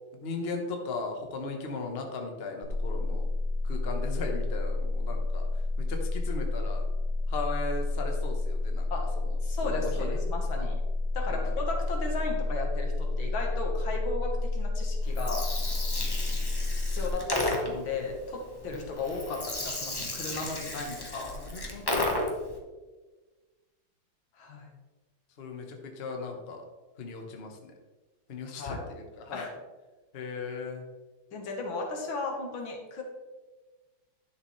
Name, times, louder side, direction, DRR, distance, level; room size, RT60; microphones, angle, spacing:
voice 1, 0.2-3.3 3.6-5.5 5.8-6.8 7.3-8.9 9.6-10.1 10.6-10.7 11.3-11.5 21.3-22.1 25.4-26.6 27.0-27.7 28.3-28.7 29.2-29.5 30.1-30.8, left 3 dB, 40° left, 3 dB, 1.1 m, -37 dB
sound 1, 2.6-17.1, left 2 dB, 45° right, 3.0 m, -30 dB
voice 2, 9.4-10.8 11.1-15.5 16.9-21.4 24.3-24.7 28.5-28.8 29.3-29.5 31.3-33.0, left 3 dB, 85° left, 2 dB, 2.1 m, -35 dB
Gurgling, 15.0-22.5, left 1 dB, 15° left, 0.8 m, -33 dB
10.5 x 6.5 x 3.2 m, 1.3 s
omnidirectional pair, 2.1 m